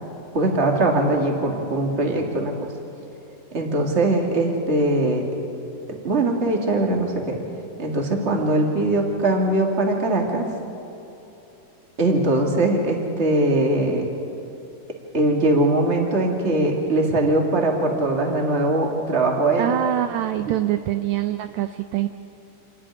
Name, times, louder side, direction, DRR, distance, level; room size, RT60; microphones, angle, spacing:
voice 1, 0.3-2.5 3.5-5.2 5.9-7.4 7.8-10.4 12.0-14.1 15.1-19.7, right 2 dB, 25° right, 1 dB, 2.1 m, -21 dB
voice 2, 19.6-22.1, right 13 dB, 80° right, 9 dB, 1.6 m, -24 dB
27.5 x 11.5 x 9.9 m, 3.0 s
omnidirectional pair, 3.8 m